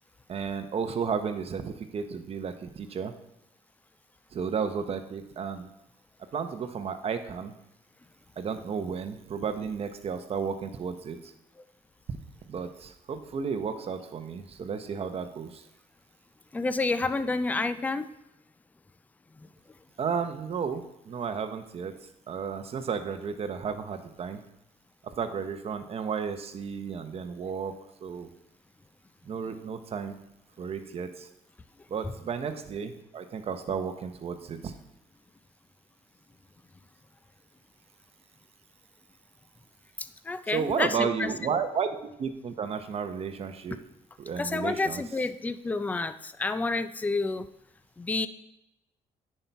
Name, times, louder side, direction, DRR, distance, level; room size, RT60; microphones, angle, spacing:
voice 1, 0.3-3.1 4.3-5.7 6.3-7.5 8.4-11.3 12.5-15.6 20.0-21.9 22.3-24.4 25.2-27.7 28.0-28.3 29.2-30.1 30.6-31.3 31.9-34.7 40.5-41.9 42.2-43.8 44.2-45.0, right 6 dB, 45° right, 8 dB, 0.8 m, -33 dB
voice 2, 16.5-18.1 40.3-41.3 44.4-47.5 48.0-48.3, left 3 dB, 10° left, 13 dB, 0.4 m, -29 dB
9.9 x 5.5 x 4.6 m, 0.83 s
cardioid pair, 130°, 15 cm